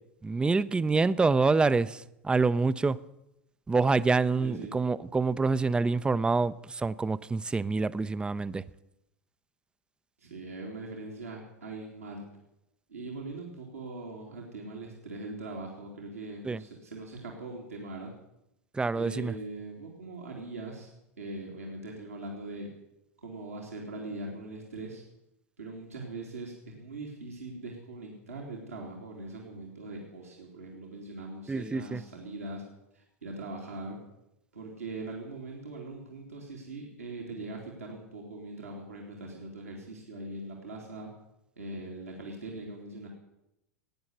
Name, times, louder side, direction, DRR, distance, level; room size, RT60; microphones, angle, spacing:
voice 1, 0.2-3.0 3.7-8.6 16.4-16.6 18.7-19.3 31.5-32.0, right 4 dB, 10° right, 0.5 m, -26 dB
voice 2, 4.4-4.8 10.2-12.3 12.9-18.1 18.9-20.9 21.2-22.7 23.2-25.0 25.6-32.6 32.9-34.0 34.5-41.1 41.6-43.1, right 2 dB, 85° right, 2.9 m, -41 dB
17.0 x 9.6 x 8.0 m
hypercardioid pair, 85°, 8 cm